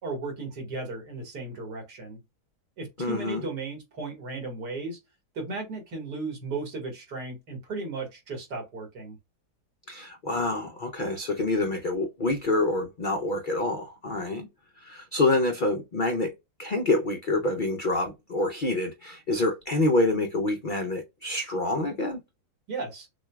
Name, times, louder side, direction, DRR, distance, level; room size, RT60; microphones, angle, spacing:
voice 1, 0.0-2.2 2.8-5.0 5.4-9.2 22.7-23.1, right 3 dB, 75° right, 2.3 m, -35 dB
voice 2, 3.0-3.4 9.9-14.5 14.8-16.3 16.6-22.2, left 2 dB, 90° left, 0.4 m, -27 dB
6.1 x 2.3 x 2.2 m
omnidirectional pair, 1.8 m